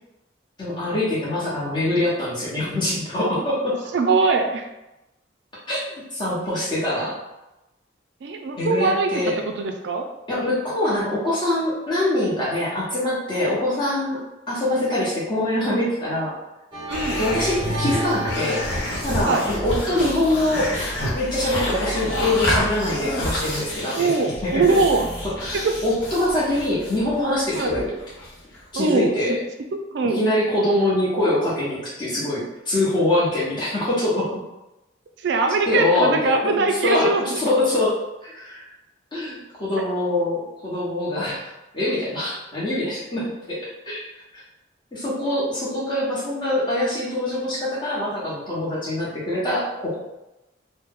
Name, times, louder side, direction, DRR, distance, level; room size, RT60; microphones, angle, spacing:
voice 1, 0.6-3.8 5.7-5.8 6.1-7.2 8.6-9.3 10.3-14.2 14.5-16.3 17.2-18.6 19.0-20.7 21.1-24.1 24.4-24.6 25.4-27.9 28.7-29.4 30.1-34.3 35.7-37.9 38.2-38.7 39.1-44.0 44.9-50.0, left 1 dB, 25° left, -8 dB, 1.0 m, -24 dB
voice 2, 3.9-4.7 8.2-9.1 9.4-10.1 13.5-13.6 16.9-17.2 19.2-19.5 23.9-25.1 25.5-25.7 27.5-27.7 28.8-29.4 29.7-30.2 35.2-37.4 39.8-39.9, right 4 dB, 65° right, 4 dB, 0.3 m, -22 dB
sound 1, 16.7-21.6 22.5-22.6, equal, 25° right, 0.7 m, -33 dB
sound 2, 16.9-28.6, left 1 dB, 70° left, 1.0 m, -29 dB
3.0 x 2.1 x 3.6 m, 0.96 s
head